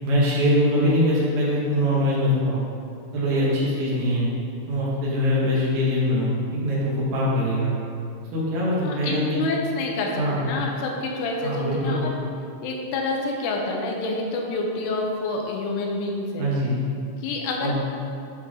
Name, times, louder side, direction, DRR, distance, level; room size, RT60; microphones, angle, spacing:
voice 1, 0.0-2.6 3.1-4.3 4.7-7.7 8.3-9.4 10.1-10.4 11.4-12.0 16.4-16.8 17.6-17.7, equal, 60° right, -7 dB, 3.0 m, -22 dB
voice 2, 8.8-12.1 12.6-16.5 17.2-17.7, left 2 dB, 80° left, 0 dB, 3.3 m, -28 dB
10.5 x 5.8 x 3.8 m, 2.5 s
omnidirectional pair, 5.6 m